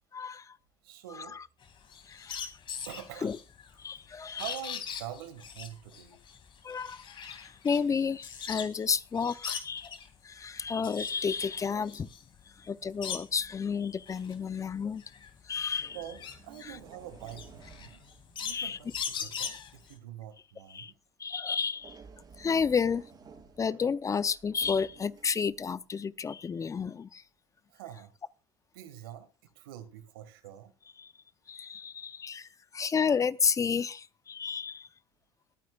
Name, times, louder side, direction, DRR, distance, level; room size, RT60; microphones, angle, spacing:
voice 1, 0.1-0.4 2.1-2.5 3.2-3.4 3.8-4.4 6.6-9.9 10.2-12.1 12.6-15.0 15.5-16.0 18.5-18.8 20.7-20.9 21.2-22.0 22.4-23.1 23.6-27.2 31.5-32.5 32.7-34.9, left 6 dB, 30° left, 0.7 m, -31 dB
voice 2, 0.8-1.4 2.8-3.3 4.3-6.2 15.8-18.0 18.4-20.9 27.7-28.1 28.7-29.3 29.6-30.7, right 11 dB, 85° right, 1.9 m, -45 dB
sound 1, 1.6-8.8 9.1-10.1 10.6-13.5 14.0-19.9, left 7 dB, 45° left, 2.6 m, -41 dB
sound 2, 15.1-15.3 15.8-19.3 21.7-25.7 26.8-26.9, right 4 dB, 40° right, 4.9 m, -54 dB
22.0 x 9.3 x 2.5 m
supercardioid pair, 80°, 12 cm